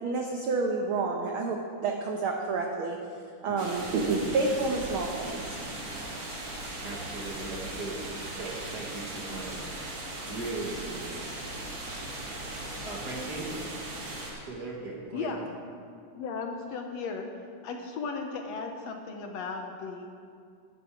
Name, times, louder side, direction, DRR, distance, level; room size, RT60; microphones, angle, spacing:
voice 1, 0.0-3.0 3.4-5.4, right 3 dB, 80° right, 1 dB, 1.1 m, -29 dB
voice 2, 3.5-3.9 6.7-9.7 10.3-11.2 12.8-13.8 14.3-15.3, right 2 dB, 40° right, -3 dB, 1.7 m, -39 dB
sound 1, 3.6-14.3, right 1 dB, 60° right, 3.2 m, -38 dB
voice 3, 15.1-15.6 16.2-17.3 17.6-20.1, left 4 dB, 70° left, 4 dB, 1.8 m, -35 dB
12.5 x 11.0 x 4.9 m, 2.3 s
omnidirectional pair, 3.5 m